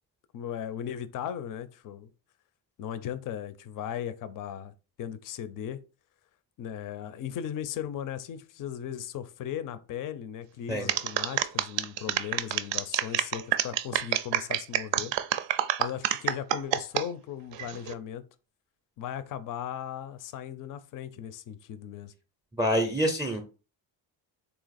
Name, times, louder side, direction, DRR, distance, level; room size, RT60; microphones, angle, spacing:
voice 1, 0.3-2.1 2.8-5.8 6.6-15.1 15.8-18.2 19.0-22.1, left 9 dB, 45° left, 0.4 m, -37 dB
sound 1, 10.9-17.0 17.5-17.9, right 12 dB, 65° right, 0.5 m, -27 dB
voice 2, 22.6-23.4, equal, 10° right, 0.4 m, -26 dB
3.9 x 2.8 x 4.0 m
cardioid pair, 150°, 48 cm